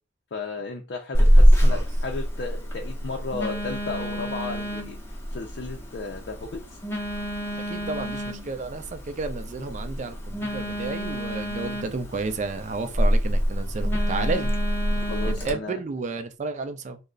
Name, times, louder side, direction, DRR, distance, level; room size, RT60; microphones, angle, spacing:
voice 1, 0.3-5.0 5.3-6.6 14.9-15.8, left 3 dB, 65° left, 0.4 m, -34 dB
Telephone, 1.1-15.5, equal, 15° left, 0.5 m, -24 dB
voice 2, 7.7-14.5 15.2-17.0, right 3 dB, 40° right, 0.4 m, -32 dB
2.4 x 2.0 x 3.5 m
head